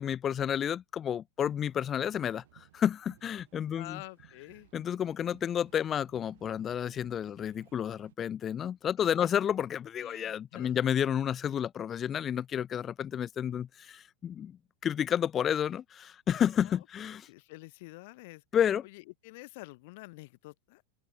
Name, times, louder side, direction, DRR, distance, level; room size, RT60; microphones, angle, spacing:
voice 1, 0.0-4.0 4.7-17.3 18.5-18.8, left 9 dB, 25° left, 0.6 m, -31 dB
sound 1, 1.4-8.2, right 15 dB, 70° right, 3.3 m, -61 dB
voice 2, 3.7-4.7 9.0-9.3 10.0-10.8 16.6-16.8 17.3-18.4 18.8-20.8, left 23 dB, 55° left, 2.6 m, -48 dB
supercardioid pair, 145°, 0 cm